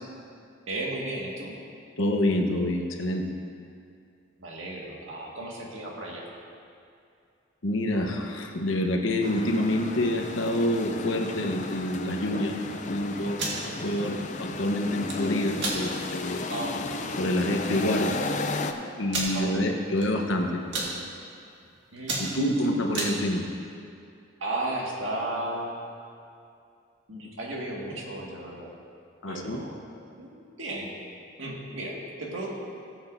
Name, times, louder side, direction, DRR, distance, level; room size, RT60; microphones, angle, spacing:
voice 1, 0.7-1.5 4.4-6.3 16.5-16.9 19.3-19.9 21.9-22.4 24.4-25.7 27.1-28.7 29.3-29.8 30.2-30.9 31.4-32.5, right 1 dB, 90° right, -3 dB, 1.9 m, -34 dB
voice 2, 2.0-3.2 7.6-16.4 17.2-18.1 19.0-20.6 22.2-23.4 29.2-29.6, left 1 dB, 90° left, 2 dB, 1.1 m, -27 dB
sound 1, 9.2-18.7, left 3 dB, 40° left, 0.5 m, -34 dB
sound 2, 13.2-13.6 14.8-15.2 15.6-15.8 16.3-16.4 16.8-17.0 17.8-17.9 18.1-18.2 19.1-19.4 20.0-20.3 20.6-20.9 21.5-21.7 22.0-23.1, right 3 dB, 70° right, 1.9 m, -31 dB
18.5 x 7.9 x 2.7 m, 2.5 s
head